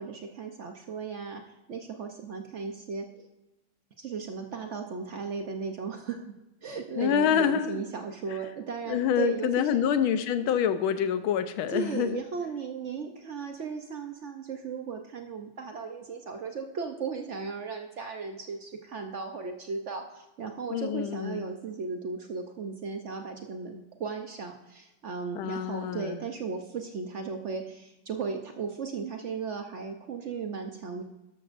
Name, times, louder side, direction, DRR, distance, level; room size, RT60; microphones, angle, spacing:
voice 1, 0.0-3.3 4.0-9.7 11.7-31.0, right 5 dB, 85° right, 5 dB, 0.6 m, -36 dB
voice 2, 7.0-7.8 8.9-12.2 20.7-21.5 25.3-26.2, left 8 dB, 80° left, 11 dB, 1.6 m, -27 dB
12.5 x 12.5 x 2.6 m, 1.0 s
omnidirectional pair, 2.3 m